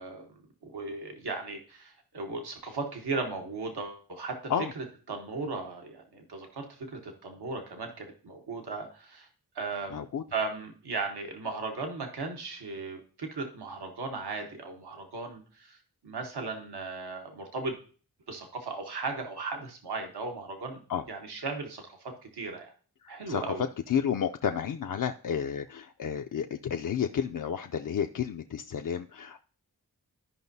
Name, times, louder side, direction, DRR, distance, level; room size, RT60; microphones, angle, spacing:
voice 1, 0.0-9.3 9.5-10.0 10.3-15.8 16.0-17.8 18.3-20.8 21.1-22.7 23.1-23.6, right 3 dB, 85° right, 3 dB, 1.1 m, -37 dB
voice 2, 9.9-10.2 20.9-21.0 23.0-23.5 23.9-29.4, left 8 dB, 55° left, 5 dB, 0.5 m, -31 dB
12.5 x 5.3 x 2.7 m, 0.41 s
cardioid pair, 45°, 38 cm